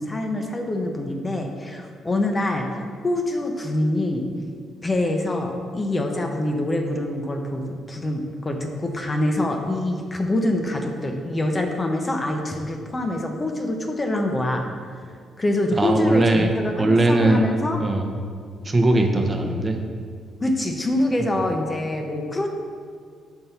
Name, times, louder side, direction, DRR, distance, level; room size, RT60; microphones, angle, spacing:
voice 1, 0.0-4.3 4.8-14.6 15.0-17.8 20.4-22.5, left 1 dB, 25° left, 3 dB, 0.7 m, -25 dB
voice 2, 15.8-16.5 16.8-17.5 17.8-18.1 18.6-19.8 21.2-21.3, right 2 dB, 25° right, 3 dB, 0.8 m, -19 dB
5.4 x 4.5 x 5.6 m, 2.1 s
cardioid pair, 90°, 0 cm